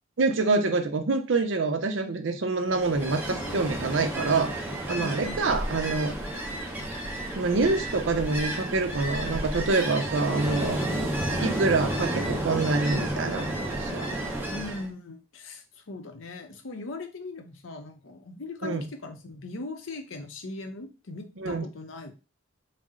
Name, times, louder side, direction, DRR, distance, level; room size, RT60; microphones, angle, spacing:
voice 1, 0.2-4.5 4.9-6.1 7.3-10.8 11.4-14.1 18.6-18.8 21.4-21.7, right 3 dB, 65° right, 7 dB, 0.6 m, -26 dB
Ocean, 2.7-14.9, right 1 dB, 10° right, 0.7 m, -31 dB
voice 2, 5.0-5.4 14.5-22.1, left 2 dB, 75° left, 7 dB, 0.7 m, -39 dB
4.1 x 2.1 x 3.6 m, 0.31 s
head